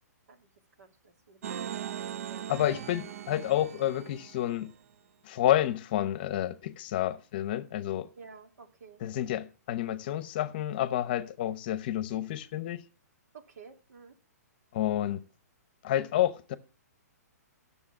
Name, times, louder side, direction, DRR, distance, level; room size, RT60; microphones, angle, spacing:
voice 1, 0.8-1.7 2.3-2.5 8.2-9.0 13.3-14.1, right 5 dB, 75° right, 2.6 m, -52 dB
sound 1, 1.4-4.7, right 9 dB, 60° right, 0.7 m, -40 dB
voice 2, 2.5-4.7 5.2-8.1 9.0-12.8 14.7-15.2 15.8-16.5, left 12 dB, 35° left, 0.8 m, -29 dB
12.5 x 7.0 x 7.2 m
hypercardioid pair, 165°, 9 cm